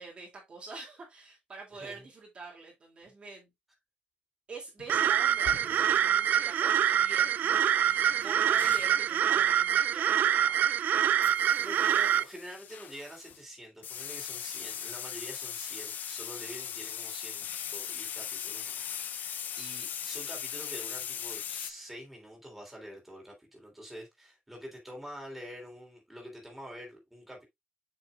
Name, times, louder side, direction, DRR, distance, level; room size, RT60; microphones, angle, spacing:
voice 1, 0.0-3.5 4.5-10.7, right 3 dB, 35° right, 2.6 m, -46 dB
voice 2, 1.7-2.1 11.6-27.4, equal, 5° right, 3.2 m, -46 dB
sound 1, 4.8-5.0 5.5-5.9 7.7-9.0 9.4-9.6 11.2-13.4 13.8-21.7, left 9 dB, 60° left, 0.6 m, -39 dB
sound 2, 4.9-12.2, right 10 dB, 65° right, 0.4 m, -25 dB
7.6 x 5.9 x 2.4 m
cardioid pair, 155°, 3 cm